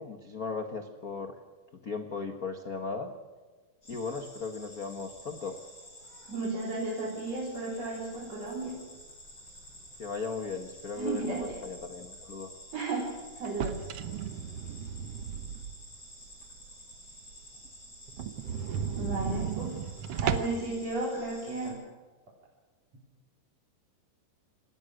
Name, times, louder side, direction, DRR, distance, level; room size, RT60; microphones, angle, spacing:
voice 1, 0.0-1.3 1.8-3.1 3.9-5.6 10.0-12.5, left 4 dB, 75° left, 6 dB, 0.8 m, -37 dB
sound 1, 3.8-21.7, left 1 dB, 30° left, 7.6 m, -51 dB
voice 2, 6.3-8.8 11.0-11.6 12.7-13.1 13.4-13.8 18.9-19.8 20.1-21.8, right 2 dB, 50° right, -5 dB, 5.1 m, -34 dB
sound 2, 13.4-16.0 16.4-16.5 16.9-17.0 17.3-17.4 17.7-17.8 18.1-20.7, right 8 dB, 70° right, 1.5 m, -34 dB
27.0 x 19.0 x 6.5 m, 1.4 s
omnidirectional pair, 3.9 m